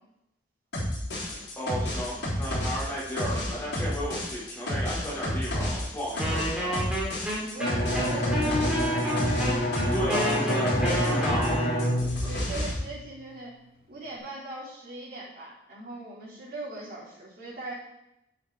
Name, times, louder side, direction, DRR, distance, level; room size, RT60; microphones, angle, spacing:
sound 1, 0.7-11.5 11.8-12.7, left 1 dB, 85° left, 3.3 m, -31 dB
voice 1, 1.6-6.8 9.9-11.7 12.0-12.3, equal, 10° left, -8 dB, 4.0 m, -33 dB
Wind instrument woodwind instrument, 6.2-12.0, equal, 5° right, 2.3 m, -31 dB
voice 2, 7.4-9.7 12.3-13.5 13.9-17.7, right 2 dB, 55° right, -7 dB, 3.9 m, -39 dB
Bowed string instrument, 7.6-13.3, equal, 55° left, 2.9 m, -28 dB
8.6 x 7.4 x 4.1 m, 0.83 s
head